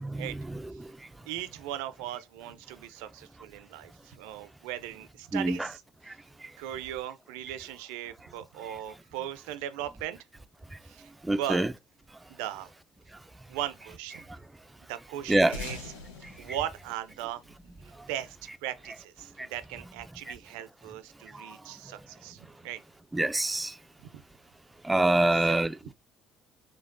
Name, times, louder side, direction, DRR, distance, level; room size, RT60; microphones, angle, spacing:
voice 1, 1.2-5.8 6.6-10.2 10.8-11.7 12.3-12.7 13.5-14.3 14.9-15.9 16.4-17.4 17.8-22.8 24.0-24.2 25.3-25.9, right 12 dB, 75° right, 0.4 m, -38 dB
voice 2, 11.3-11.7 15.3-15.6 23.1-23.7 24.9-25.9, right 2 dB, 15° right, 0.4 m, -24 dB
sound 1, 15.5-18.3, left 3 dB, 85° left, 0.8 m, -43 dB
5.1 x 3.4 x 2.5 m
hypercardioid pair, 55°, 0 cm